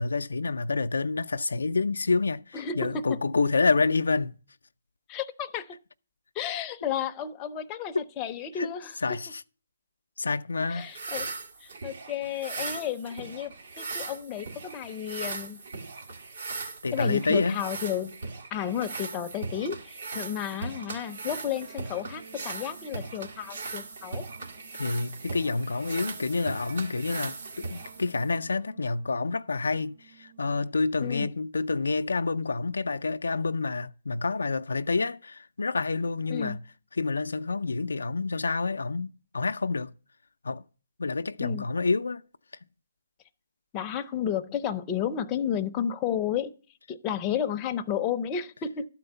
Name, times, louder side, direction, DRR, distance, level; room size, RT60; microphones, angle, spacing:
voice 1, 0.0-4.3 7.9-8.0 8.6-8.7 9.0-9.4 10.2-10.9 16.8-17.6 24.8-36.6 37.0-39.9 40.4-40.6 41.0-42.2, left 3 dB, 90° left, 0.4 m, -28 dB
voice 2, 2.5-3.2 5.1-5.7 6.3-9.2 10.7-11.3 11.6-15.6 16.9-18.1 18.5-24.2 31.0-31.3 36.3-36.6 41.4-41.6 43.7-46.5 46.9-48.9, left 9 dB, 20° left, 0.6 m, -32 dB
sound 1, 10.8-28.4, right 3 dB, 70° right, 1.7 m, -39 dB
Guitar, 20.0-30.7, right 4 dB, 90° right, 1.7 m, -53 dB
12.0 x 4.5 x 6.6 m
hypercardioid pair, 155°, 0 cm